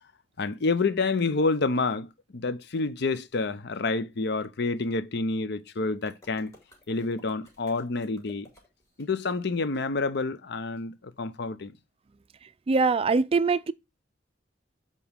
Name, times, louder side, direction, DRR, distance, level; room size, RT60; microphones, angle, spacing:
voice 1, 0.4-6.5 6.9-8.5 9.0-11.7, left 3 dB, 60° left, 0.7 m, -28 dB
sound 1, 6.0-9.0, left 1 dB, 20° left, 2.4 m, -56 dB
voice 2, 12.7-13.7, right 4 dB, 30° right, 0.4 m, -23 dB
7.1 x 4.2 x 3.5 m
head